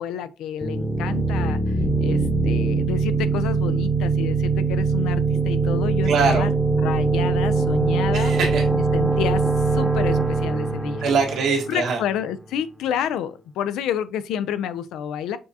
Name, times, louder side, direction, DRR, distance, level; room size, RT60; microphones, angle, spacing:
voice 1, 0.0-8.3 8.7-9.4 9.7-11.0 11.7-15.4, left 9 dB, 90° left, 0.4 m, -29 dB
sound 1, 0.6-12.2, right 4 dB, ahead, 0.8 m, -22 dB
voice 2, 6.0-6.5 8.1-8.7 11.0-12.0, right 4 dB, 80° right, 1.4 m, -22 dB
6.1 x 2.4 x 2.7 m
cardioid pair, 90°, 0 cm